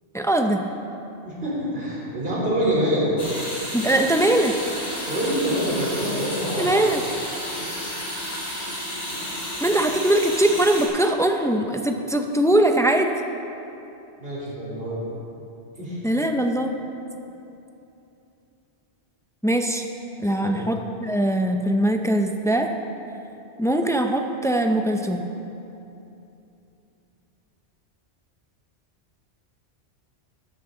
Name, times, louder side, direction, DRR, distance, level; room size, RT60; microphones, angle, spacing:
voice 1, 0.1-0.6 3.7-4.5 6.6-7.0 9.6-13.1 16.0-16.7 19.4-19.8 20.2-22.7 23.6-25.3, right 1 dB, 5° left, 4 dB, 0.3 m, -21 dB
voice 2, 1.2-3.1 5.1-6.8 14.2-15.0 15.8-16.0 20.4-20.7, equal, 55° right, -7 dB, 3.7 m, -26 dB
sound 1, 3.2-10.9, equal, 50° left, 3.2 m, -31 dB
14.0 x 11.5 x 3.8 m, 2.8 s
omnidirectional pair, 1.2 m